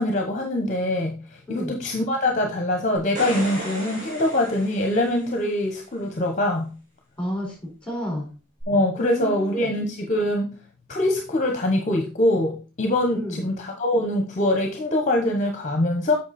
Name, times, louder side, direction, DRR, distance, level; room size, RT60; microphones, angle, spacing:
voice 1, 0.0-6.7 8.7-10.5 10.9-16.1, left 1 dB, 35° left, 3 dB, 1.0 m, -23 dB
sound 1, 3.0-5.5 8.6-8.7, right 1 dB, 40° right, 3.3 m, -34 dB
voice 2, 7.2-8.3 9.0-9.7 13.1-13.4, equal, 5° left, -1 dB, 4.5 m, -31 dB
7.9 x 5.8 x 4.2 m, 0.35 s
head